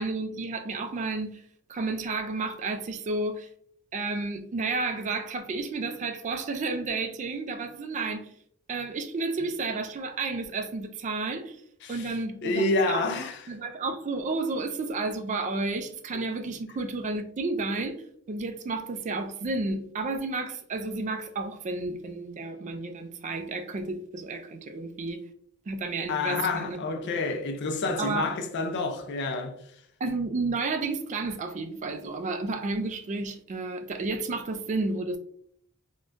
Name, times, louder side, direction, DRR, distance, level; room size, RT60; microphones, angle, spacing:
voice 1, 0.0-1.4 1.7-3.5 3.9-8.3 8.7-11.6 11.9-13.1 13.5-18.0 18.3-25.2 25.7-27.1 28.0-28.3 30.0-35.2, right 3 dB, 35° right, 0.3 m, -31 dB
voice 2, 11.8-12.2 12.4-13.4 26.1-29.6, left 3 dB, 55° left, 0.4 m, -28 dB
3.5 x 2.2 x 2.5 m
head